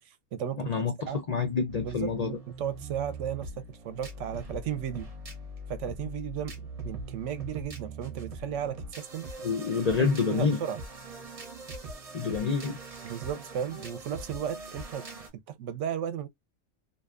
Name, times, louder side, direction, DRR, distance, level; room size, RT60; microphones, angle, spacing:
voice 1, 0.0-0.7 1.1-1.2 1.8-5.1 5.7-6.5 6.8-9.3 10.0-10.8 13.0-15.1 15.3-16.3, right 9 dB, 70° right, 0.8 m, -35 dB
voice 2, 0.7-2.4 9.4-10.6 12.1-12.8, left 5 dB, 75° left, 0.3 m, -27 dB
sound 1, 1.7-15.3, right 2 dB, 35° right, 0.7 m, -42 dB
2.6 x 2.3 x 2.3 m
omnidirectional pair, 1.4 m